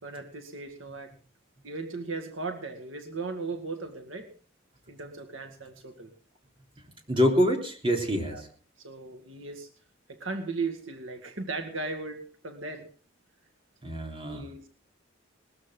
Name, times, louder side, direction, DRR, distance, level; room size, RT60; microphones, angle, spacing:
voice 1, 0.0-1.1 1.6-4.3 4.9-6.1 8.3-8.4 8.8-9.7 10.1-12.9 14.3-14.7, right 3 dB, 75° right, 6 dB, 2.0 m, -37 dB
voice 2, 7.1-8.5 13.8-14.7, equal, 25° right, 2 dB, 3.6 m, -26 dB
20.0 x 14.0 x 3.8 m, 0.38 s
head